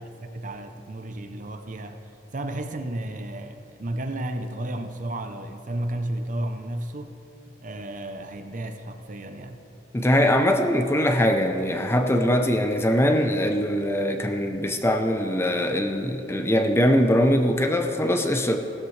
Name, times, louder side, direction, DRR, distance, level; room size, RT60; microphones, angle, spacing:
voice 1, 0.0-2.0 2.3-7.2 7.6-9.6, right 1 dB, 45° right, 7 dB, 0.7 m, -33 dB
voice 2, 9.9-18.6, equal, 15° left, 5 dB, 0.7 m, -22 dB
16.5 x 13.5 x 3.2 m, 2.9 s
head